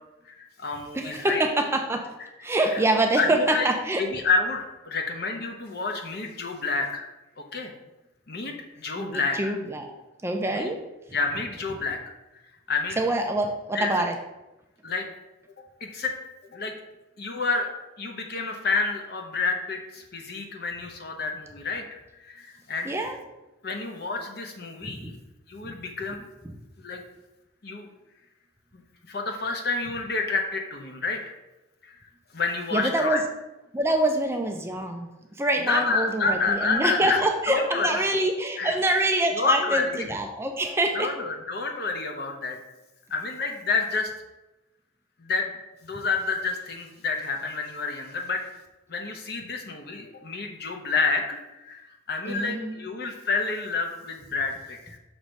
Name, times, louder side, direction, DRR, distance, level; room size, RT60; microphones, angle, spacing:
voice 1, 0.3-1.4 3.2-3.7 4.0-7.1 7.5-7.7 8.3-9.5 10.5-10.7 11.1-12.0 12.7-13.0 13.7-13.9 14.8-15.1 15.8-16.1 16.5-16.7 17.2-22.9 23.6-25.1 25.5-26.3 26.8-27.0 27.6-27.9 29.1-31.3 31.8-32.0 32.3-33.2 35.7-37.9 38.6-38.8 39.3-40.0 40.9-42.6 43.1-44.1 45.2-45.5 45.8-48.4 48.9-55.0, left 4 dB, 50° left, 3 dB, 0.9 m, -29 dB
voice 2, 0.9-2.1 2.4-4.0 9.0-9.9 10.2-10.8 13.0-14.2 22.8-23.2 24.8-25.1 25.6-25.8 26.4-26.6 32.7-33.2 33.7-41.1 52.3-52.8, right 1 dB, 15° right, 4 dB, 0.4 m, -25 dB
6.1 x 3.1 x 5.2 m, 1.0 s
head